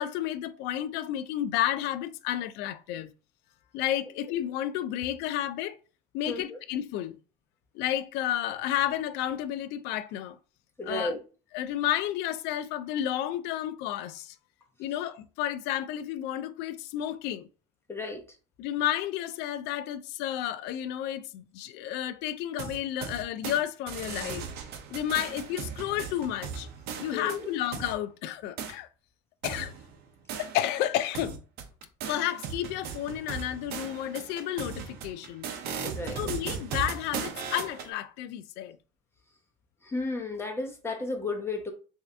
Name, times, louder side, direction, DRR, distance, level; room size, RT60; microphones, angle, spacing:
voice 1, 0.0-3.1 3.7-5.8 6.1-7.2 7.7-10.4 10.8-11.1 11.5-14.4 14.8-17.5 18.6-24.5 24.9-26.7 27.0-28.9 29.4-29.7 30.4-31.4 32.1-35.5 36.2-38.8, left 12 dB, 75° left, 0.4 m, -31 dB
voice 2, 6.3-6.6 10.8-11.2 17.9-18.2 27.1-27.5 35.8-36.2 39.8-41.7, left 2 dB, 15° left, 1.1 m, -33 dB
sound 1, 22.6-23.6 23.9-27.9 28.6-28.7 29.4-30.8 31.1-37.9, right 7 dB, 65° right, 0.7 m, -38 dB
3.3 x 2.7 x 3.3 m
supercardioid pair, 105°, 18 cm